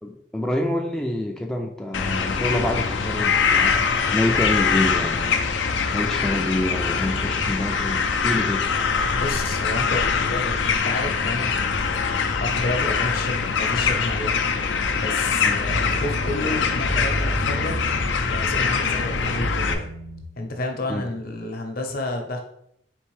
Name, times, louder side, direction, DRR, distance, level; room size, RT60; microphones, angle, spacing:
voice 1, 0.0-5.5 5.9-8.6 15.4-15.6 20.9-21.1, left 1 dB, 5° left, 1 dB, 0.3 m, -27 dB
sound 1, 1.9-19.7, left 5 dB, 90° left, 0.5 m, -23 dB
voice 2, 9.1-11.7 12.1-14.4 14.9-17.8 18.2-19.9 20.4-22.4, left 2 dB, 55° left, 3 dB, 0.8 m, -31 dB
sound 2, 15.7-20.2, equal, 85° right, 1.8 m, -30 dB
4.4 x 3.3 x 3.2 m, 0.73 s
head